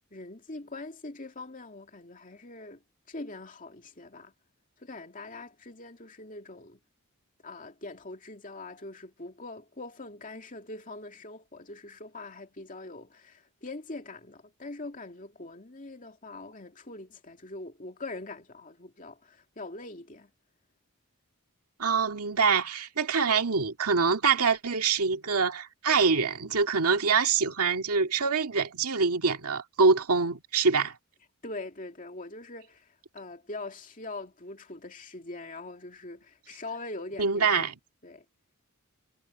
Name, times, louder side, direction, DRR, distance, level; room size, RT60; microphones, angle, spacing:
voice 1, 0.1-4.3 4.8-6.8 7.4-20.3 31.4-37.6 38.0-38.2, left 2 dB, 35° left, 2.5 m, -43 dB
voice 2, 21.8-30.9 37.2-37.7, right 5 dB, 90° right, 2.0 m, -25 dB
head